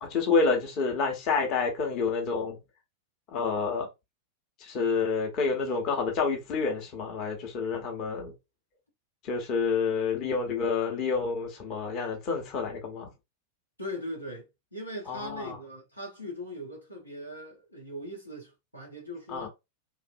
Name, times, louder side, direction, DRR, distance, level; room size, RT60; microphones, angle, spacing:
voice 1, 0.0-2.6 3.3-3.9 4.6-8.3 9.2-13.1 15.1-15.6 19.3-19.5, left 4 dB, 40° left, 0.9 m, -28 dB
voice 2, 13.8-19.5, left 1 dB, 85° left, 1.1 m, -40 dB
2.9 x 2.5 x 2.6 m
figure-of-eight pair, 90°, 0 cm